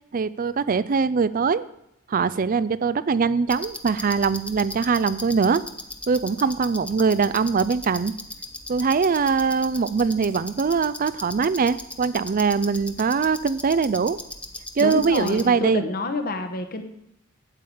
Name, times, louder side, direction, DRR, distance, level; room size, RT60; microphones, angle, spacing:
voice 1, 0.1-1.6 2.1-5.6 6.1-8.1 8.7-14.2 14.8-15.9, right 5 dB, 40° right, 17 dB, 0.4 m, -22 dB
sound 1, 3.5-15.4, left 2 dB, 5° left, 0.9 m, -38 dB
voice 2, 14.8-16.8, left 3 dB, 45° left, 7 dB, 1.2 m, -27 dB
12.0 x 8.8 x 5.0 m, 0.80 s
head